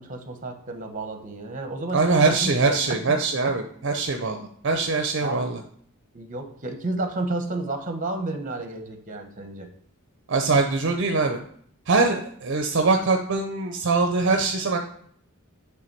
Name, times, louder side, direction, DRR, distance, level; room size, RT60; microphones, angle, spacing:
voice 1, 0.0-2.0 2.4-2.7 5.2-5.5 6.1-9.7, right 2 dB, 40° right, 6 dB, 0.9 m, -31 dB
voice 2, 1.9-5.6 10.3-11.4 11.9-14.8, right 3 dB, 60° right, 4 dB, 0.6 m, -23 dB
7.8 x 3.5 x 4.5 m, 0.62 s
head